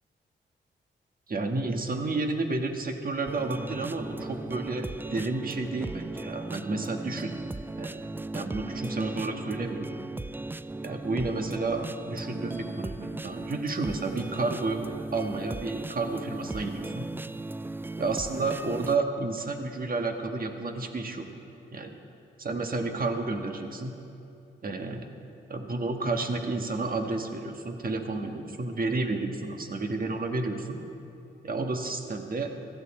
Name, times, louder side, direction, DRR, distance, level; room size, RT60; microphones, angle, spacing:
voice 1, 1.3-7.3 7.8-8.0 8.3-9.9 10.8-14.8 15.1-17.1 18.0-21.3 21.7-21.9 22.4-23.9 24.6-25.1 25.5-30.8 31.4-32.5, right 3 dB, 45° right, 5 dB, 1.6 m, -31 dB
sound 1, 3.3-19.0, right 2 dB, 10° right, 0.3 m, -37 dB
15.5 x 13.5 x 4.4 m, 2.7 s
cardioid pair, 55°, 20 cm